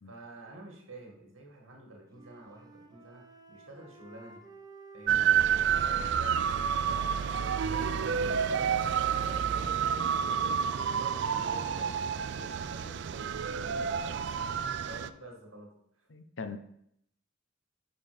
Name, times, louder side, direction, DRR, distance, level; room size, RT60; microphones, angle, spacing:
voice 1, 0.0-3.2 3.5-4.4 4.9-5.3 5.6-16.1, right 1 dB, 85° right, 1 dB, 1.8 m, -49 dB
Wind instrument woodwind instrument, 2.1-7.1 7.8-12.8, right 1 dB, 20° right, 0.8 m, -50 dB
sound 1, 5.1-15.1, right 8 dB, 60° right, 0.3 m, -29 dB
voice 2, 16.1-16.6, left 5 dB, 65° left, 9 dB, 0.7 m, -40 dB
5.4 x 5.1 x 5.1 m, 0.72 s
head